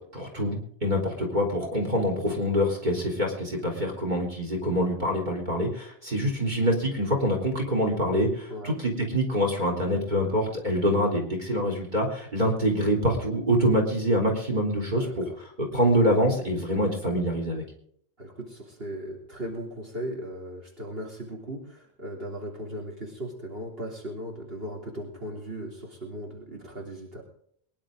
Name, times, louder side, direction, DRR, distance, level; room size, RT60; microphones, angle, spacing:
voice 1, 0.1-17.6, equal, 45° right, 1 dB, 3.9 m, -25 dB
voice 2, 14.9-15.4 18.2-27.2, equal, 65° right, -2 dB, 3.6 m, -37 dB
23.5 x 11.0 x 3.9 m, 0.65 s
omnidirectional pair, 1.1 m